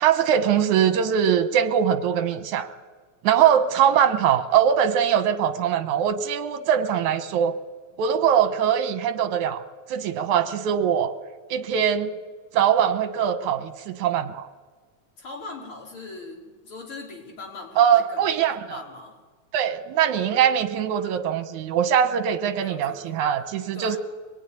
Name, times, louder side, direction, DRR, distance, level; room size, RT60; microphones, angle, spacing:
voice 1, 0.0-2.7 3.2-7.6 8.0-9.6 9.9-11.1 11.5-12.1 12.5-14.5 17.8-18.8 19.5-24.0, right 9 dB, 75° right, 10 dB, 2.5 m, -22 dB
voice 2, 15.2-19.1 22.5-23.4 23.7-24.0, left 3 dB, 45° left, -1 dB, 4.1 m, -41 dB
23.5 x 19.5 x 9.6 m, 1.4 s
omnidirectional pair, 3.5 m